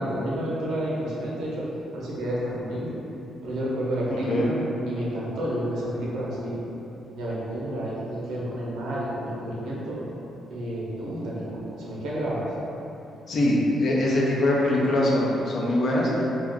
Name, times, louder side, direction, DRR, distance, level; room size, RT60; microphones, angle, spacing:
voice 1, 0.0-1.7 1.9-3.0 3.4-4.6 4.9-6.6 7.1-10.0 10.5-12.5, equal, 80° right, -6 dB, 0.7 m, -30 dB
voice 2, 13.3-16.2, left 1 dB, 55° left, -4 dB, 0.6 m, -22 dB
2.5 x 2.3 x 3.6 m, 3.0 s
cardioid pair, 90°, 0 cm